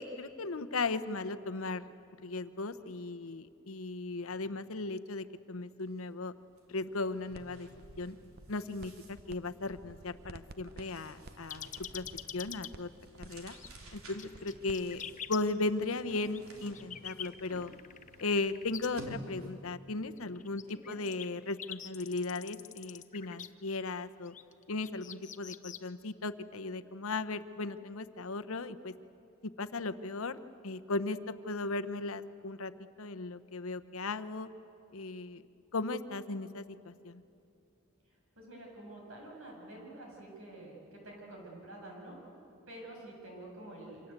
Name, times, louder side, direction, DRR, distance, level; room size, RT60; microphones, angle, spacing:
voice 1, 0.0-1.9 2.2-6.3 6.7-7.7 8.0-8.2 8.5-11.7 11.9-12.1 12.3-12.9 13.2-13.6 13.9-15.0 15.3-17.7 18.2-24.3 24.7-28.9 29.4-30.4 30.6-32.7 33.0-34.5 34.9-35.4 35.7-37.2, left 3 dB, 75° left, 10 dB, 0.9 m, -36 dB
sound 1, 5.8-6.0 6.3-19.7, right 1 dB, 90° right, 3.4 m, -53 dB
sound 2, 7.3-7.5 7.8-9.4 9.6-14.8, right 2 dB, 50° right, 0.8 m, -51 dB
sound 3, 11.5-12.7 13.3-13.7 14.1-15.4 16.2-18.9 20.2-23.5 24.2-25.9, left 9 dB, 35° left, 0.9 m, -45 dB
voice 2, 20.7-21.0 38.1-42.2 42.7-44.1, right 1 dB, 70° right, -1 dB, 7.8 m, -48 dB
27.5 x 25.5 x 8.2 m, 2.7 s
head